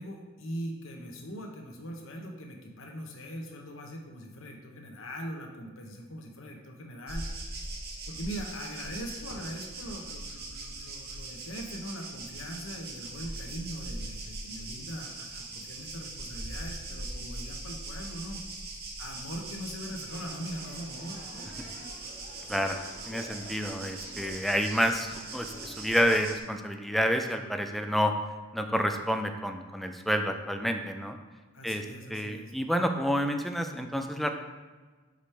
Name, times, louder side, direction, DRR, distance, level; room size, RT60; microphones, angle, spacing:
voice 1, 0.0-7.3 7.6-7.7 8.1-18.4 19.0-21.2 31.5-32.5, equal, 80° left, 2 dB, 1.0 m, -41 dB
sound 1, 7.1-26.4, right 2 dB, 50° right, 1.0 m, -41 dB
sound 2, 20.0-26.4, left 1 dB, 60° left, 1.4 m, -49 dB
voice 2, 23.1-28.1 28.5-31.2 31.6-34.3, equal, ahead, 5 dB, 0.4 m, -29 dB
5.1 x 5.0 x 4.4 m, 1.3 s
head